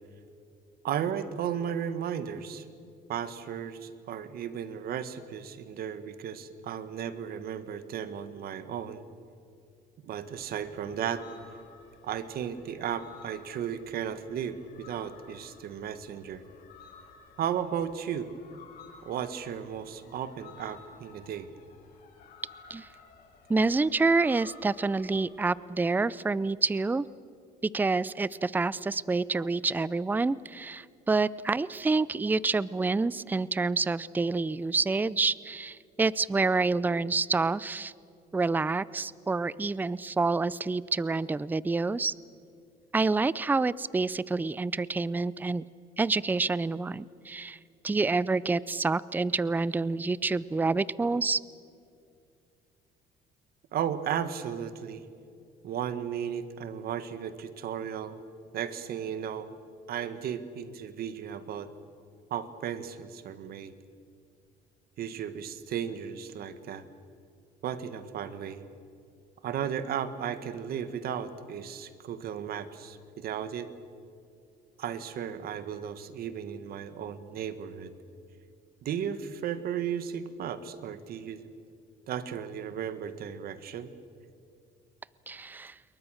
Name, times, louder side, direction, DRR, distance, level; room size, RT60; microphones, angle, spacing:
voice 1, 0.8-2.6 3.1-9.0 10.0-11.3 12.0-16.4 17.4-18.3 19.0-21.5 53.7-55.0 55.6-58.2 58.5-59.6 59.9-61.7 62.3-63.7 65.0-66.8 67.6-68.6 69.4-73.7 74.8-77.9 78.8-81.4 82.1-83.9, right 8 dB, 65° right, 12 dB, 1.6 m, -35 dB
sound 1, 10.2-25.5, left 5 dB, 65° left, 7.6 m, -54 dB
voice 2, 23.5-27.0 27.7-37.9 38.3-42.1 42.9-45.6 46.0-47.6 47.8-51.4 85.3-85.7, right 3 dB, 10° right, 20 dB, 0.5 m, -28 dB
28.0 x 22.5 x 6.5 m, 2.4 s
cardioid pair, 110°, 17 cm